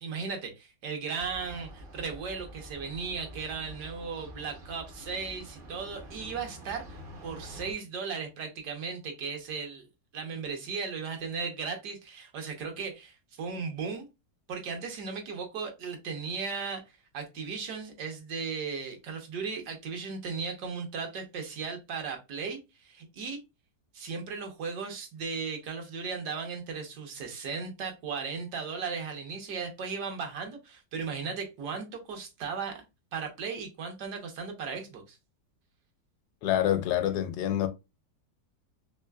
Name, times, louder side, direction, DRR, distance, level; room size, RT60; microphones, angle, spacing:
voice 1, 0.0-9.8 10.1-14.1 14.5-23.4 23.9-32.8 33.1-35.2, right 5 dB, 70° right, 1.4 m, -36 dB
sound 1, 1.1-7.7, equal, 50° right, 0.6 m, -47 dB
voice 2, 36.4-37.7, left 11 dB, 75° left, 1.1 m, -26 dB
3.7 x 3.1 x 2.2 m
omnidirectional pair, 1.8 m